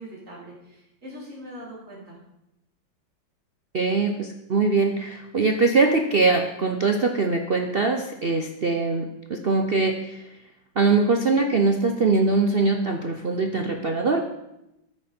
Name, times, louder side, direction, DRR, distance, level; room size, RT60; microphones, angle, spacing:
voice 1, 0.0-2.2, equal, 40° right, -6 dB, 4.6 m, -41 dB
voice 2, 3.7-10.2 10.8-14.2, right 3 dB, 70° right, 4 dB, 0.5 m, -22 dB
13.5 x 9.7 x 4.4 m, 0.88 s
omnidirectional pair, 2.1 m